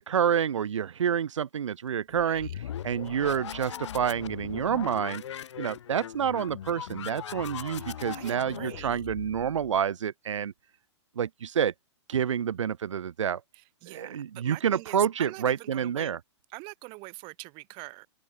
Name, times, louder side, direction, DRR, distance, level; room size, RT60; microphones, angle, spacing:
voice 1, 0.0-2.5 2.8-5.2 5.6-10.5 11.2-11.7 12.1-13.4 13.9-16.2, right 8 dB, 85° right, 2.6 m, -28 dB
sound 1, 2.1-9.8, left 10 dB, 70° left, 2.4 m, -40 dB
voice 2, 2.1-2.5 7.8-9.0 13.5-16.2 16.5-18.1, right 27 dB, 30° right, 4.2 m, -44 dB
open air
hypercardioid pair, 150°, 15 cm